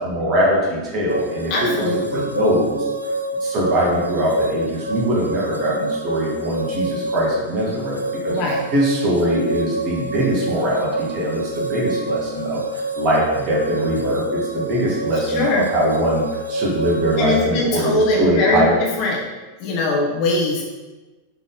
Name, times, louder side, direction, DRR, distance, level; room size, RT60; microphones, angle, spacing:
voice 1, 0.0-2.8 3.4-8.4 8.7-18.7, equal, 35° right, -4 dB, 2.1 m, -22 dB
sound 1, 1.1-17.5, right 2 dB, 85° right, 0.4 m, -28 dB
voice 2, 1.5-2.3 8.3-8.6 15.3-15.7 17.2-19.2 19.6-20.6, left 2 dB, 45° left, -2 dB, 1.3 m, -21 dB
6.2 x 3.9 x 4.1 m, 1.2 s
figure-of-eight pair, 90°, 0 cm